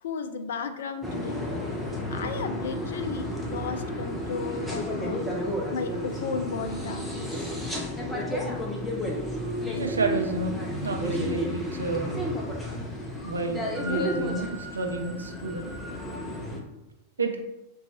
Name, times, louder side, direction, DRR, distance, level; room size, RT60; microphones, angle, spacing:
voice 1, 0.0-1.5 2.1-5.2 5.7-7.4, left 5 dB, 60° left, 8 dB, 0.3 m, -34 dB
sound 1, 1.0-16.6, left 1 dB, 5° left, 0.6 m, -32 dB
voice 2, 9.7-12.1 13.2-15.7 17.2-17.4, right 3 dB, 75° right, 3 dB, 0.5 m, -30 dB
3.9 x 2.3 x 2.8 m, 0.92 s
figure-of-eight pair, 90°, 0 cm